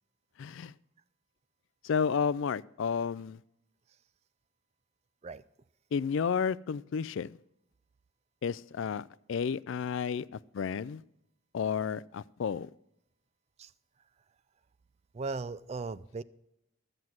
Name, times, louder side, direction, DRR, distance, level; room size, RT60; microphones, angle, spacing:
voice 1, 0.4-0.7 1.8-3.4 5.9-7.4 8.4-11.0 11.5-12.7, left 6 dB, 60° left, 20 dB, 0.3 m, -32 dB
voice 2, 15.1-16.2, right 4 dB, 30° right, 17 dB, 0.3 m, -37 dB
13.0 x 7.8 x 5.9 m, 0.81 s
head